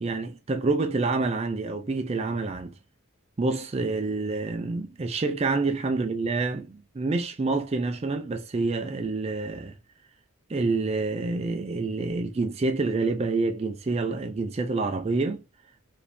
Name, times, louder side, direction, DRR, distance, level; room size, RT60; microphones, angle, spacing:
voice 1, 0.0-2.8 3.4-9.7 10.5-15.4, right 3 dB, 30° right, 0.4 m, -27 dB
4.8 x 2.7 x 3.3 m
head